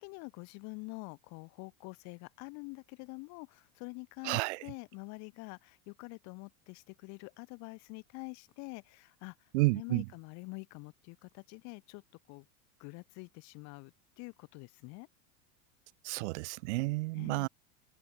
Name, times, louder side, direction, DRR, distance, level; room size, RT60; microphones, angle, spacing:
voice 1, 0.0-9.3 9.7-12.0 12.3-12.4 12.8-15.1 17.2-17.5, left 28 dB, 40° left, 2.9 m, -46 dB
voice 2, 4.2-4.7 9.5-10.1 16.0-17.5, right 24 dB, 50° right, 1.6 m, -31 dB
supercardioid pair, 165°, 44 cm